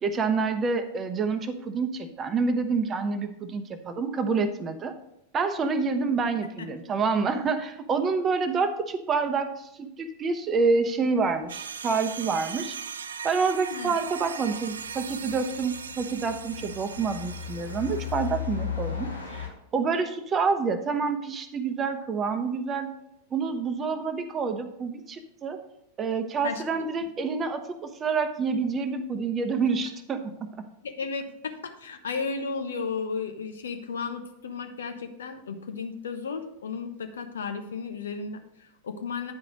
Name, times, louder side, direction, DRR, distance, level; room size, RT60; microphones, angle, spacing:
voice 1, 0.0-4.9 5.3-12.8 13.2-19.5 19.7-22.9 23.3-25.6 26.0-30.5, right 4 dB, 25° right, 8 dB, 0.8 m, -27 dB
sound 1, 11.3-11.5 14.0-19.5, left 9 dB, 80° left, 1.4 m, -37 dB
sound 2, 11.5-18.5, right 6 dB, 70° right, 0.4 m, -39 dB
voice 2, 30.8-39.3, left 5 dB, 65° left, 6 dB, 0.9 m, -34 dB
9.4 x 5.0 x 5.1 m, 0.81 s
figure-of-eight pair, 90°, 0 cm